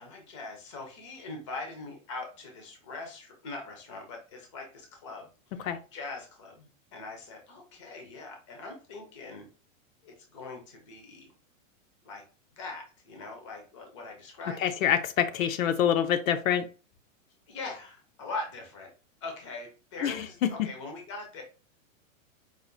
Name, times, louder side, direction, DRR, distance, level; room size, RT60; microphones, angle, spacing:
voice 1, 0.0-9.5 10.0-11.3 12.0-12.2 12.6-15.0 17.5-18.9 19.2-21.4, left 3 dB, 25° left, 0.5 m, -42 dB
voice 2, 14.6-16.6 20.0-20.5, left 9 dB, 80° left, 0.7 m, -26 dB
4.7 x 2.4 x 2.5 m
supercardioid pair, 180°, 40 cm